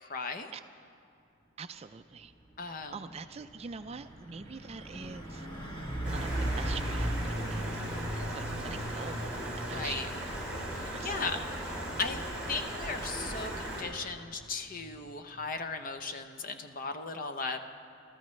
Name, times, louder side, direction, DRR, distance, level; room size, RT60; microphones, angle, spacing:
voice 1, 0.0-0.5 2.6-3.2 9.5-10.1 10.7-11.4 12.0-12.2 12.5-17.7, left 4 dB, 40° left, 7 dB, 0.7 m, -37 dB
voice 2, 1.6-2.3 2.9-5.7 6.1-7.8 8.2-9.2 9.7-10.1 10.9-11.4, right 5 dB, 30° right, 10 dB, 0.3 m, -44 dB
Truck, 2.3-2.6 2.9-15.5, equal, 25° left, 1.9 m, -39 dB
Stream, 6.0-13.8, right 1 dB, 5° right, 3.2 m, -38 dB
28.0 x 13.5 x 3.2 m, 2.7 s
head